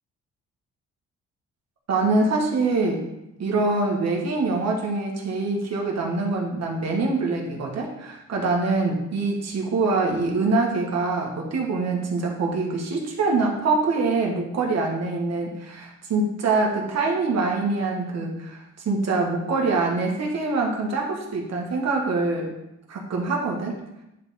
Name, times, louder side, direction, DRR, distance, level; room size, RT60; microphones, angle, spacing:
voice 1, 1.9-3.0 3.4-22.5 22.9-23.7, right 3 dB, 60° right, 0 dB, 1.7 m, -24 dB
10.0 x 3.6 x 4.3 m, 0.89 s
cardioid pair, 90°, 30 cm